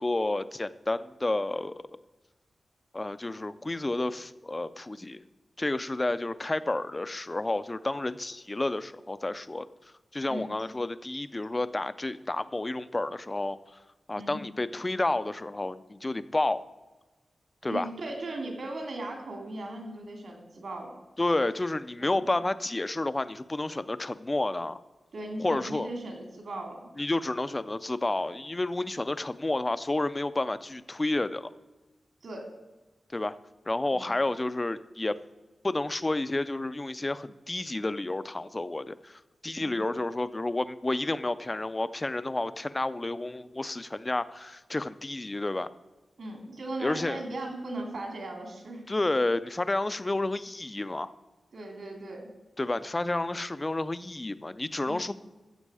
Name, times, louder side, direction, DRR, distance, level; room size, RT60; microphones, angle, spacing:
voice 1, 0.0-1.9 2.9-5.2 5.6-9.7 10.1-13.6 14.1-16.6 17.6-17.9 21.2-24.8 25.4-25.9 27.0-31.5 33.1-33.4 33.7-35.1 35.6-45.7 46.8-47.2 48.9-51.1 52.6-55.1, left 2 dB, 20° left, 14 dB, 0.4 m, -30 dB
voice 2, 17.7-20.9 22.0-22.2 25.1-26.9 32.2-32.4 33.9-34.2 39.6-39.9 46.2-48.9 51.5-52.3 54.9-55.1, right 2 dB, 65° right, 2 dB, 2.5 m, -38 dB
14.0 x 7.6 x 4.8 m, 1.2 s
wide cardioid pair, 160°, 0 cm